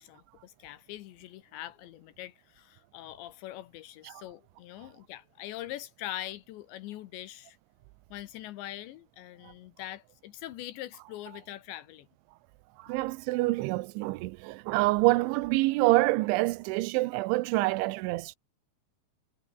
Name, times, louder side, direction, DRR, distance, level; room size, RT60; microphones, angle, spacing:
voice 1, 0.0-7.6 8.1-12.1, left 14 dB, 75° left, 3.1 m, -43 dB
voice 2, 12.8-18.4, right 20 dB, 85° right, 3.1 m, -27 dB
omnidirectional pair, 5.5 m